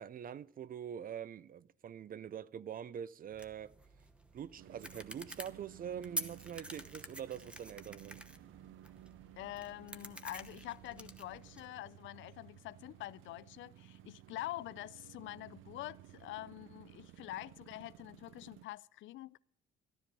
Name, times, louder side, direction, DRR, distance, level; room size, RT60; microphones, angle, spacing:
voice 1, 0.0-3.7 4.3-8.2, right 9 dB, 45° right, 0.5 m, -44 dB
sound 1, 3.3-11.7, right 1 dB, 5° right, 0.9 m, -48 dB
sound 2, 4.6-18.7, right 14 dB, 85° right, 0.7 m, -56 dB
voice 2, 9.4-19.4, left 15 dB, 75° left, 0.4 m, -46 dB
14.0 x 10.0 x 5.2 m
cardioid pair, 90°, 20 cm